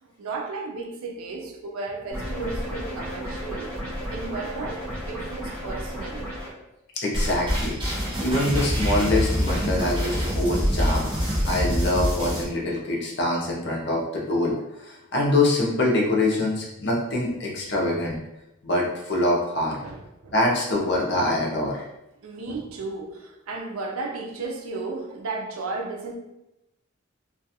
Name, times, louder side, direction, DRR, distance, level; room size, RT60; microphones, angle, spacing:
voice 1, 0.0-3.8 4.1-6.3 17.6-17.8 19.8-20.4 22.2-26.2, right 3 dB, 90° right, 0.5 m, -34 dB
sound 1, 2.1-6.5, equal, 5° left, 0.9 m, -33 dB
voice 2, 7.0-7.7 8.2-11.1 11.5-18.2 18.6-19.8 20.3-21.8, left 1 dB, 55° left, 0.6 m, -24 dB
sound 2, 7.1-12.4, equal, 25° right, 0.6 m, -25 dB
2.3 x 2.3 x 2.7 m
head